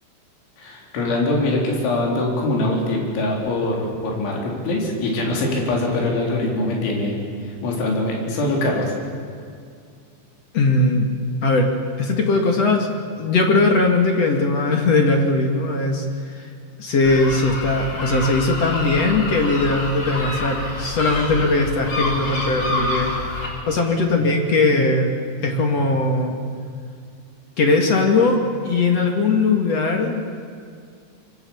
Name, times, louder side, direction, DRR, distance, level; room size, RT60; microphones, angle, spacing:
voice 1, 0.6-3.8 4.0-8.9, left 2 dB, 85° left, -1 dB, 6.2 m, -23 dB
voice 2, 10.5-11.1 11.4-11.7 12.0-12.9 13.2-16.5 16.8-23.2 23.6-25.1 25.4-26.4 27.6-30.2, left 3 dB, 45° left, 3 dB, 2.4 m, -19 dB
sound 1, 17.0-23.5, left 2 dB, 25° left, 3.6 m, -27 dB
26.5 x 23.0 x 7.1 m, 2.3 s
omnidirectional pair, 5.2 m